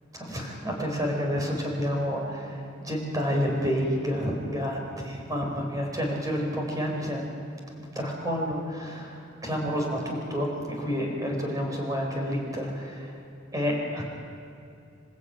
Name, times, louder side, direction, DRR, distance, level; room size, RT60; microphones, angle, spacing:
voice 1, 0.1-7.3 7.8-13.1 13.5-14.1, equal, 20° right, 0 dB, 4.9 m, -29 dB
28.0 x 14.5 x 9.1 m, 2.6 s
head